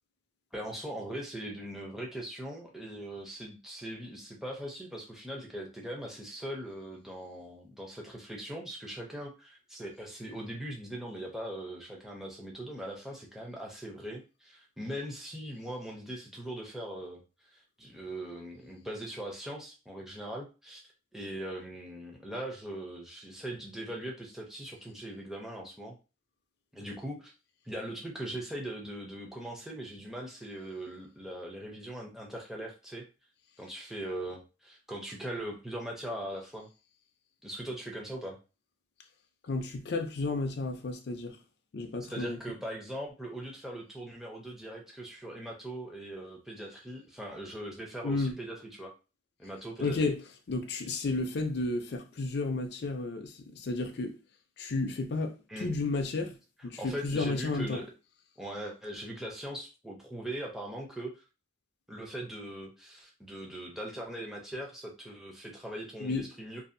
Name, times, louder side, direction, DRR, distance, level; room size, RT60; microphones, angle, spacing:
voice 1, 0.5-17.2 17.5-20.8 21.1-26.0 26.7-27.3 27.6-33.0 33.6-36.7 37.4-38.4 42.1-48.9 49.4-50.1 55.5-55.7 56.8-57.9 58.4-61.2 61.9-66.6, right 1 dB, ahead, 0.5 m, -40 dB
voice 2, 39.4-41.4 41.7-42.4 48.0-48.3 49.8-50.2 50.5-54.2 54.6-56.3 56.6-57.8 66.0-66.3, left 3 dB, 55° left, 0.5 m, -32 dB
2.6 x 2.4 x 2.6 m
head